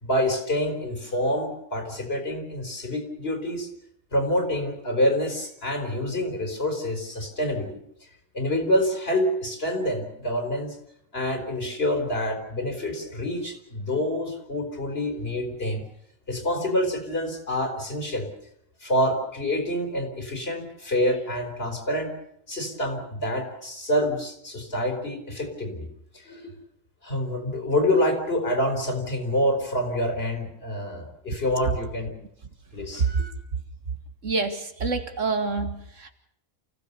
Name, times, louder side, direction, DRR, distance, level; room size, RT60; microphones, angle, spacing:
voice 1, 0.0-3.7 4.1-7.8 8.3-10.8 11.1-15.8 16.3-18.3 18.8-22.1 22.5-25.9 26.1-26.5 27.0-32.1 32.7-33.3, left 1 dB, 45° left, 4 dB, 4.2 m, -27 dB
voice 2, 32.9-33.2 34.2-36.1, right 4 dB, 60° right, 6 dB, 2.0 m, -26 dB
29.0 x 16.0 x 6.8 m, 0.73 s
omnidirectional pair, 1.5 m